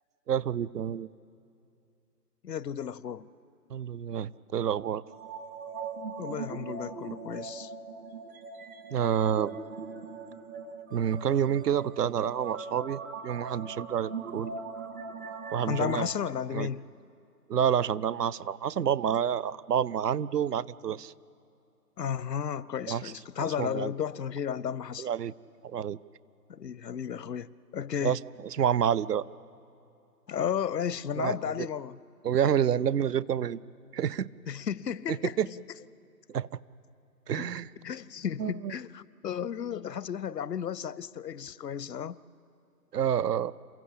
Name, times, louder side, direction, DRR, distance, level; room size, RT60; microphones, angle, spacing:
voice 1, 0.3-1.1 3.7-5.0 8.9-9.6 10.9-14.5 15.5-16.1 16.5-16.7 17.5-21.1 22.9-23.1 23.4-23.9 25.0-25.3 25.7-26.0 28.0-28.2 28.6-29.2 31.2-31.5 32.2-33.6 33.9-34.3 35.1-35.5 36.3-36.5 37.3-37.7 38.4-38.7 42.9-43.5, right 9 dB, 75° right, 0.6 m, -28 dB
voice 2, 2.4-3.3 6.2-7.7 15.7-16.8 22.0-25.1 26.5-28.2 30.3-32.0 34.5-35.6 37.3-37.5 37.8-42.2, left 8 dB, 85° left, 0.7 m, -33 dB
sound 1, 5.1-16.0, right 5 dB, 55° right, 2.5 m, -40 dB
28.0 x 15.0 x 8.7 m
figure-of-eight pair, 140°, 48 cm